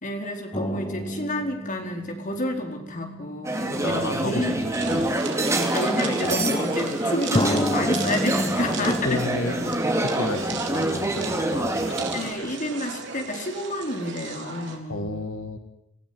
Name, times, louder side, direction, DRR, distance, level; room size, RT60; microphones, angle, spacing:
voice 1, 0.0-4.6 5.7-9.2 12.1-15.1, left 1 dB, 40° left, 3 dB, 4.3 m, -29 dB
sound 1, 0.5-4.5 5.3-5.4 7.3-10.7 11.0-11.1, left 1 dB, 20° left, 1.5 m, -31 dB
sound 2, 3.4-12.3, right 1 dB, 15° right, 2.8 m, -26 dB
voice 2, 3.8-5.1 8.6-12.1 14.9-15.6, left 2 dB, 85° left, 7 dB, 2.0 m, -33 dB
sound 3, 4.7-14.8, right 5 dB, 60° right, 3.5 m, -36 dB
27.5 x 16.0 x 9.6 m, 0.80 s
head